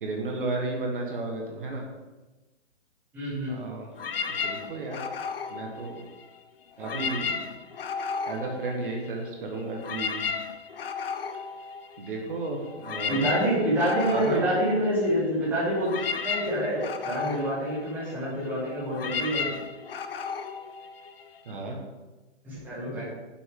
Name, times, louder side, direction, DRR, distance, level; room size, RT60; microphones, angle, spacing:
voice 1, 0.0-1.8 3.5-3.9 4.4-5.0 5.5-6.0 6.8-7.3 8.3-10.2 12.0-13.3 14.1-14.4 21.4-21.8, right 2 dB, 45° right, 1 dB, 1.6 m, -33 dB
voice 2, 3.1-3.7 6.8-6.9 13.1-19.5 22.4-23.1, equal, 5° right, -9 dB, 1.9 m, -27 dB
sound 1, 4.0-6.4 6.7-9.3 9.6-21.5, left 5 dB, 50° left, 0.8 m, -34 dB
10.0 x 7.2 x 3.8 m, 1.1 s
hypercardioid pair, 175°, 37 cm